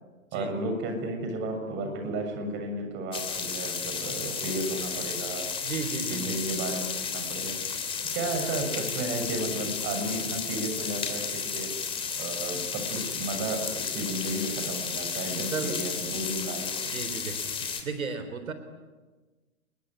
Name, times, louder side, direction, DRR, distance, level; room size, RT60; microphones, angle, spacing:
voice 1, 0.3-5.5 6.1-7.6 8.1-11.7 12.2-16.7, right 2 dB, 25° right, 5 dB, 6.8 m, -33 dB
sound 1, 3.1-17.8, left 6 dB, 10° left, 3.1 m, -33 dB
voice 2, 5.6-6.4 15.5-15.8 16.9-18.5, right 5 dB, 70° right, 9 dB, 4.0 m, -34 dB
29.0 x 21.0 x 9.7 m, 1.3 s
hypercardioid pair, 130°, 43 cm